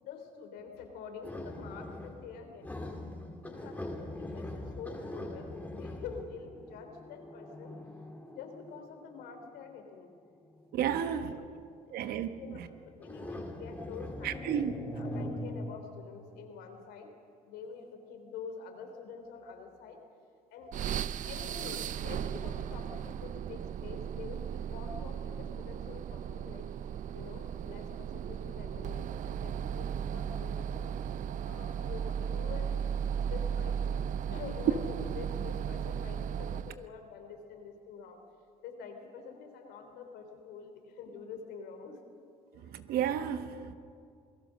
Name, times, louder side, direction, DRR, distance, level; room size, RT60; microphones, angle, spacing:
voice 1, 0.0-3.0 3.4-7.8 8.3-10.1 10.9-11.3 12.3-17.1 17.5-20.0 20.5-20.7 21.2-26.7 27.1-30.9 31.5-34.0 34.3-38.2 38.6-42.0, left 5 dB, 80° left, 3.5 m, -47 dB
sound 1, 1.2-2.3 2.6-9.5 10.4-10.7 13.0-15.6, left 1 dB, 10° left, 3.1 m, -42 dB
voice 2, 10.7-11.4 11.9-12.3 12.5-12.7 14.2-14.7 42.6-43.7, right 9 dB, 70° right, 1.3 m, -32 dB
sound 2, 20.7-36.9, right 8 dB, 55° right, 0.6 m, -36 dB
27.0 x 18.0 x 6.4 m
supercardioid pair, 85°, 16 cm